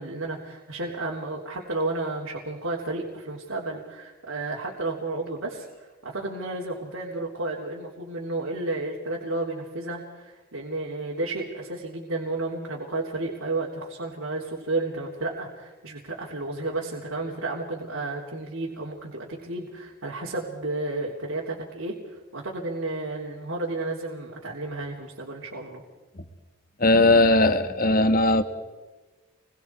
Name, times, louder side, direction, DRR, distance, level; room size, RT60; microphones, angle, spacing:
voice 1, 0.0-25.8, right 2 dB, 65° right, -4 dB, 3.5 m, -32 dB
voice 2, 26.8-28.4, left 2 dB, 40° left, 8 dB, 1.5 m, -19 dB
28.5 x 22.5 x 4.8 m, 1.2 s
head